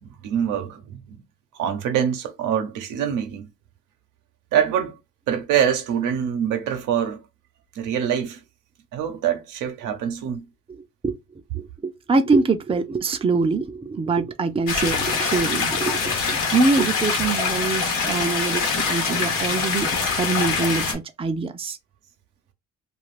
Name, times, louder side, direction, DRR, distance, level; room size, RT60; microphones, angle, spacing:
voice 1, 0.0-1.0 1.6-3.5 4.5-4.9 5.3-7.2 7.7-8.4 8.9-10.4, right 9 dB, 90° right, 0.8 m, -24 dB
voice 2, 10.7-11.2 11.5-21.8, right 4 dB, 20° right, 0.4 m, -24 dB
sound 1, 14.7-20.9, left 5 dB, 85° left, 1.0 m, -24 dB
2.5 x 2.4 x 3.1 m
cardioid pair, 90°, 30 cm